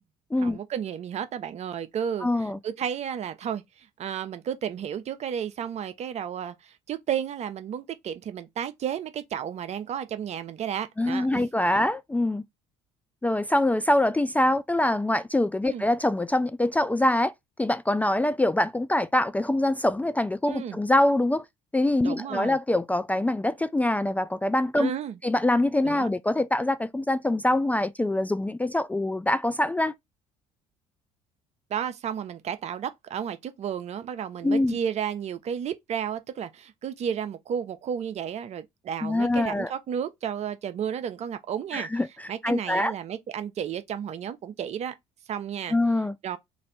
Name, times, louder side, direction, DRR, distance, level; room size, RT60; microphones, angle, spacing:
voice 1, 0.4-11.5 15.6-15.8 20.5-20.8 22.0-22.6 24.8-25.2 25.8-26.1 31.7-41.9 42.3-44.9 45.3-45.8 46.2-46.4, right 8 dB, 50° right, 0.7 m, -32 dB
voice 2, 2.2-2.6 11.0-12.4 13.2-17.3 17.6-21.4 21.7-24.9 25.2-29.9 34.4-34.8 39.0-39.7 41.7-42.1 42.4-42.9 45.7-46.1, left 1 dB, 10° left, 0.3 m, -24 dB
3.2 x 2.6 x 4.0 m
hypercardioid pair, 65°, 14 cm